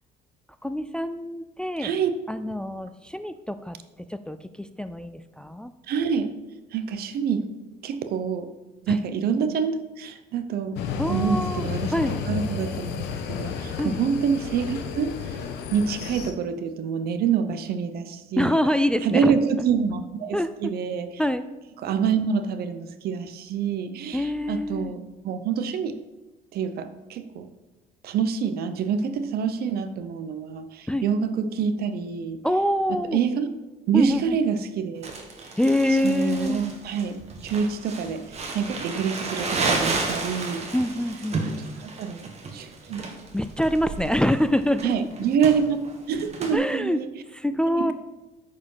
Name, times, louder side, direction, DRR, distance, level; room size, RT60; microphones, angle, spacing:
voice 1, 0.6-1.9 2.3-3.8 4.1-5.7 8.9-9.0 11.0-12.2 13.8-14.0 18.4-19.4 20.3-20.7 21.2-21.5 24.1-24.9 30.9-31.1 32.4-33.2 33.9-34.4 35.6-36.6 40.7-41.4 43.3-44.9 46.5-47.0 47.3-47.9, left 1 dB, 5° left, 11 dB, 0.3 m, -25 dB
voice 2, 1.8-2.1 5.9-6.3 6.7-7.5 7.8-8.5 8.8-10.8 11.1-11.9 12.3-12.9 13.3-15.4 15.7-18.6 19.0-21.1 21.8-26.0 26.5-27.5 28.0-32.4 32.9-33.5 33.9-35.1 36.0-40.7 41.8-43.0 44.8-45.8 46.1-47.1 47.8-47.9, right 6 dB, 65° right, 10 dB, 0.8 m, -26 dB
sound 1, 10.8-16.3, left 7 dB, 85° left, 1.0 m, -32 dB
Crumpling crinkling, 35.0-46.5, right 3 dB, 40° right, 1.6 m, -32 dB
9.3 x 5.0 x 5.6 m, 1.1 s
cardioid pair, 110°, 17 cm